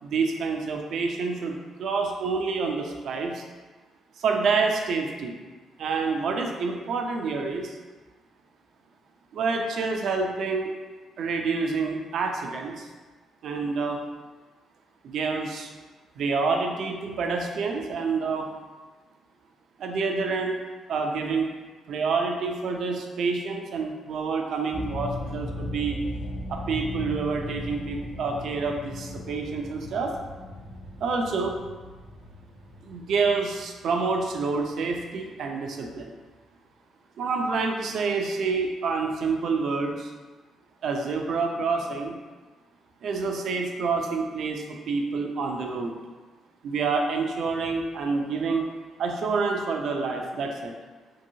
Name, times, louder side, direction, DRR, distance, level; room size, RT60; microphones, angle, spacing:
voice 1, 0.0-3.4 4.2-5.3 5.8-7.8 9.3-10.7 11.2-12.9 13.4-14.0 15.0-15.7 16.2-18.5 19.8-20.6 20.9-21.5 21.9-26.0 26.5-30.1 31.0-31.5 32.8-36.1 37.2-40.1 40.8-42.2 43.0-45.9 46.6-48.6 49.0-50.7, right 4 dB, 70° right, 3 dB, 0.4 m, -28 dB
sound 1, 24.7-35.7, left 1 dB, 50° left, 0.4 m, -38 dB
2.8 x 2.6 x 2.7 m, 1.3 s
cardioid pair, 90°, 0 cm